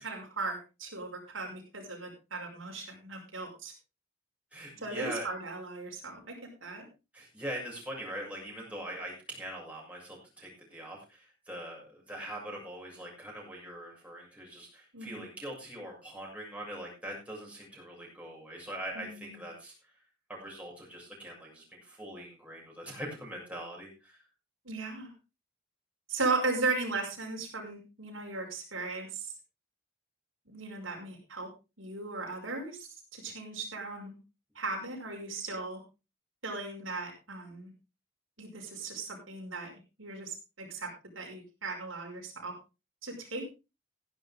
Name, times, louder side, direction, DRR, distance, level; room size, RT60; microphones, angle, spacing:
voice 1, 0.0-3.7 4.8-6.8 14.9-15.3 18.9-19.4 24.7-25.1 26.1-29.3 30.5-31.5 31.8-34.2 34.6-35.8 36.4-37.7 38.4-39.7 40.0-42.5 43.0-43.5, right 3 dB, 80° right, 0 dB, 5.4 m, -37 dB
voice 2, 4.5-5.3 7.1-19.7 20.3-24.2, right 1 dB, 5° right, -3 dB, 6.7 m, -42 dB
15.0 x 11.5 x 3.6 m, 0.29 s
head